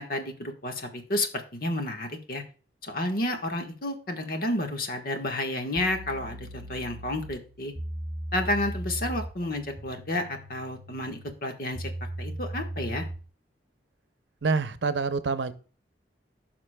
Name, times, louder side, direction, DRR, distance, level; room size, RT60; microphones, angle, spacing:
voice 1, 0.0-2.4 2.8-7.7 8.3-11.9 12.2-13.1, left 1 dB, 55° left, 1.3 m, -31 dB
sound 1, 5.7-13.3, right 1 dB, 25° right, 3.9 m, -38 dB
voice 2, 14.4-15.5, right 4 dB, 85° right, 0.7 m, -26 dB
14.5 x 5.9 x 2.2 m
head